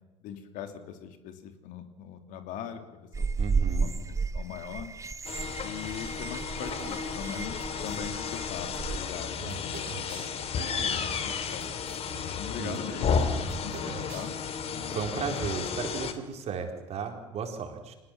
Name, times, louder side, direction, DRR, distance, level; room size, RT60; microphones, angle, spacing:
voice 1, 0.2-3.3 3.7-4.9 5.6-11.7 12.3-14.3, left 8 dB, 60° left, 7 dB, 2.8 m, -41 dB
sound 1, 3.1-9.0, right 4 dB, 20° right, 1.0 m, -33 dB
voice 2, 3.4-3.9 12.6-13.1 14.9-17.9, right 6 dB, 45° right, 4 dB, 4.3 m, -35 dB
sound 2, 5.2-16.1, left 6 dB, 40° left, 2.6 m, -33 dB
sound 3, 6.6-8.0 8.6-12.0 12.3-12.4 12.6-14.6, right 7 dB, 65° right, 4.4 m, -45 dB
25.0 x 19.5 x 7.5 m, 1.1 s
hypercardioid pair, 70°, 15 cm